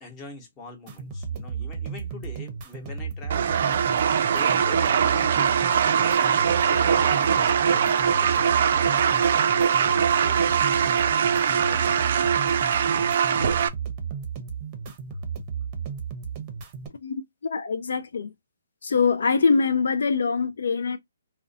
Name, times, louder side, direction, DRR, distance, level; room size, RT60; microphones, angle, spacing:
voice 1, 0.0-3.6 4.3-10.8 11.7-12.1, left 4 dB, 20° left, 0.9 m, -45 dB
sound 1, 0.9-16.9, right 6 dB, 25° right, 0.7 m, -34 dB
sound 2, 3.3-13.7, right 7 dB, 55° right, 0.4 m, -22 dB
voice 2, 17.0-18.3 18.8-21.0, left 5 dB, 70° left, 0.4 m, -24 dB
2.4 x 2.1 x 2.6 m
hypercardioid pair, 145°, 0 cm